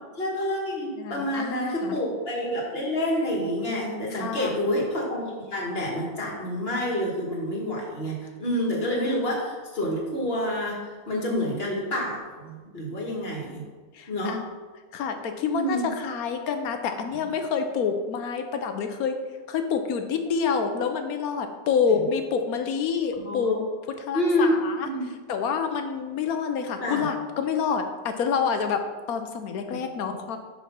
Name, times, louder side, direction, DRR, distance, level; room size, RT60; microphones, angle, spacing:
voice 1, 0.2-13.6 14.1-14.4 15.4-15.9 17.2-17.3 21.9-22.0 23.1-23.6 24.1-25.1 26.8-27.1, equal, 40° left, -1 dB, 1.8 m, -28 dB
voice 2, 1.0-2.0 4.1-4.6 13.9-14.4 14.9-19.1 19.5-24.9 25.3-28.8 29.1-30.4, left 6 dB, 75° left, 6 dB, 1.2 m, -27 dB
5.9 x 5.7 x 5.6 m, 1.4 s
omnidirectional pair, 1.6 m